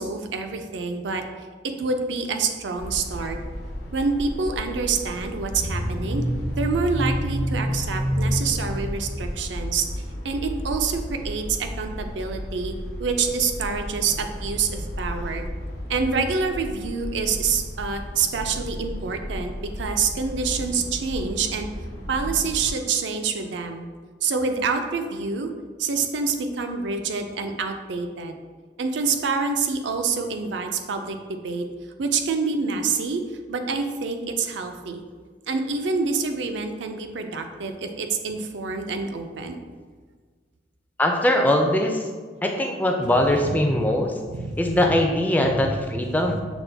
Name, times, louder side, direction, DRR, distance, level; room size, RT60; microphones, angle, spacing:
voice 1, 0.0-1.5 1.8-3.4 3.9-6.2 6.6-9.9 10.2-12.7 13.0-15.5 15.9-21.7 22.1-23.8 24.2-25.5 25.8-28.4 28.8-31.7 32.0-33.2 33.5-35.0 35.5-39.6 43.5-43.8 44.3-45.0 45.4-45.7 46.0-46.3, right 4 dB, 80° right, 6 dB, 0.4 m, -27 dB
sound 1, 2.8-22.7, equal, 65° left, 0.7 m, -31 dB
voice 2, 41.0-42.1 42.4-44.1 44.6-46.4, left 1 dB, 10° left, 2 dB, 0.3 m, -21 dB
6.1 x 2.2 x 3.3 m, 1.5 s
head